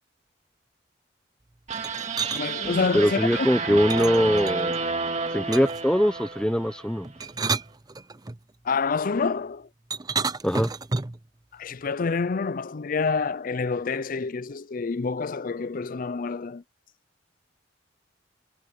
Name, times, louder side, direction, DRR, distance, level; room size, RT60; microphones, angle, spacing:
sound 1, 1.7-2.4 3.9-4.8 5.5-5.9 7.0-8.4 9.9-11.2, right 4 dB, 20° right, 0.6 m, -30 dB
sound 2, 1.7-7.0, right 4 dB, 35° right, 2.7 m, -30 dB
voice 1, 2.3-3.5 8.6-9.7 11.5-16.6, left 4 dB, 45° left, 0.5 m, -27 dB
voice 2, 2.9-4.7 5.3-7.1 10.4-10.7, equal, 5° left, 1.1 m, -22 dB
head